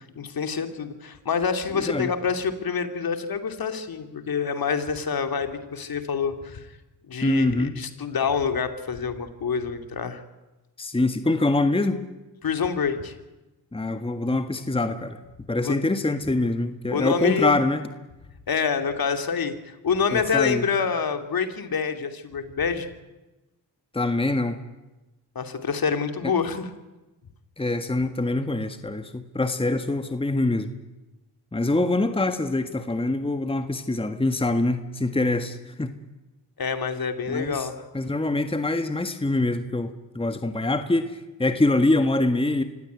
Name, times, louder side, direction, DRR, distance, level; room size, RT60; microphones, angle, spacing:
voice 1, 0.2-6.7 7.1-10.2 12.4-13.1 15.6-15.8 16.9-17.5 18.5-22.9 25.3-26.7 36.6-37.9, left 6 dB, 50° left, 7 dB, 2.9 m, -27 dB
voice 2, 1.8-2.1 7.2-7.7 10.8-12.0 13.7-15.2 15.5-17.8 20.1-20.7 23.9-24.6 27.6-30.7 31.5-35.9 37.3-37.7 37.9-42.6, left 2 dB, 10° left, 8 dB, 1.7 m, -24 dB
25.0 x 16.5 x 9.5 m, 1.1 s
supercardioid pair, 55°, 44 cm